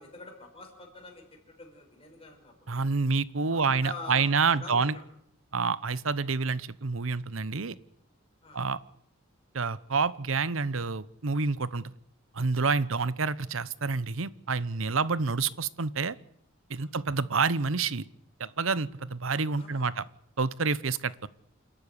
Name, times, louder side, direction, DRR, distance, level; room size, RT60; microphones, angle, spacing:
voice 1, 0.0-2.8 3.5-5.1 8.4-8.6 12.9-13.1 16.8-17.0 19.6-20.0, left 2 dB, 30° left, 0 dB, 5.5 m, -46 dB
voice 2, 2.7-4.9 5.5-7.7 8.5-8.8 9.5-11.9 12.3-16.1 16.7-18.0 18.4-20.0 20.4-21.3, right 4 dB, 70° right, 18 dB, 0.9 m, -28 dB
28.0 x 12.5 x 9.9 m, 0.70 s
head